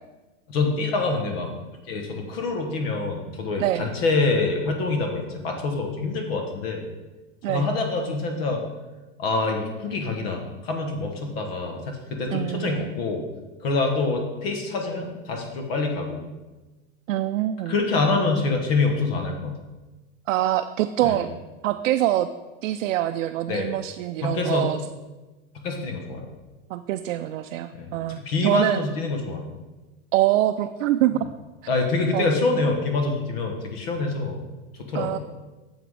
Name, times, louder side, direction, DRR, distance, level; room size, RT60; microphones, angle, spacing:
voice 1, 0.5-1.5 1.9-6.8 7.5-8.6 9.2-13.3 13.6-16.3 17.7-19.5 21.0-21.3 23.5-23.7 24.2-24.7 25.6-26.3 27.7-27.9 28.2-29.5 31.7-34.4 34.8-35.2, left 3 dB, 50° left, 3 dB, 1.2 m, -26 dB
voice 2, 3.6-3.9 7.4-7.7 12.3-12.9 17.1-17.7 20.3-21.3 21.6-22.3 22.6-24.8 26.7-28.8 30.1-31.3 32.1-32.3 34.9-35.2, right 14 dB, 80° right, 8 dB, 0.5 m, -24 dB
7.1 x 5.8 x 4.7 m, 1.2 s
supercardioid pair, 170°, 38 cm